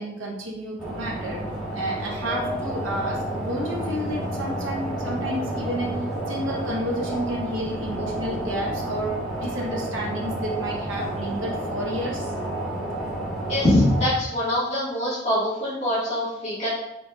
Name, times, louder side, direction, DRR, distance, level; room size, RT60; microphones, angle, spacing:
voice 1, 0.0-1.4 1.7-6.0 6.3-12.3, equal, 75° right, -2 dB, 0.9 m, -31 dB
sound 1, 0.8-14.1, right 1 dB, ahead, 1.3 m, -30 dB
voice 2, 13.5-16.7, left 1 dB, 35° left, -11 dB, 1.5 m, -23 dB
4.3 x 4.0 x 2.3 m, 0.88 s
head